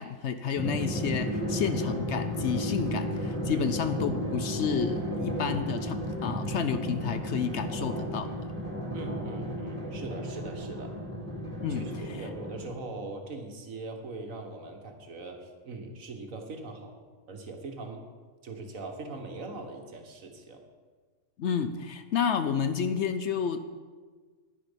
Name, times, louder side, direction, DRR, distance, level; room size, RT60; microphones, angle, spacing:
voice 1, 0.0-8.3 11.6-12.2 21.4-23.6, left 7 dB, 60° left, 9 dB, 0.8 m, -30 dB
Drum, 0.6-12.9, equal, 25° right, 2.5 m, -33 dB
voice 2, 8.9-10.9 11.7-17.0 17.3-18.0 18.4-20.6, right 3 dB, 70° right, 4 dB, 1.7 m, -41 dB
10.5 x 10.0 x 5.2 m, 1.5 s
omnidirectional pair, 1.4 m